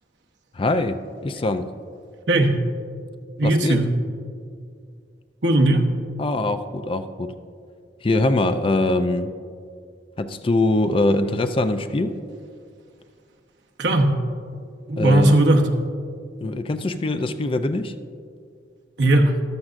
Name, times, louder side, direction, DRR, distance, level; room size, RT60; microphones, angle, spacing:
voice 1, 0.5-1.7 3.4-3.8 6.2-7.3 8.0-9.3 10.2-12.1 15.0-15.4 16.4-17.9, left 2 dB, 30° left, 10 dB, 0.4 m, -23 dB
voice 2, 2.3-2.6 3.4-3.8 5.4-5.9 13.8-14.2 14.9-15.7 19.0-19.4, right 1 dB, 85° right, 2 dB, 1.1 m, -17 dB
13.5 x 12.5 x 2.6 m, 2.2 s
head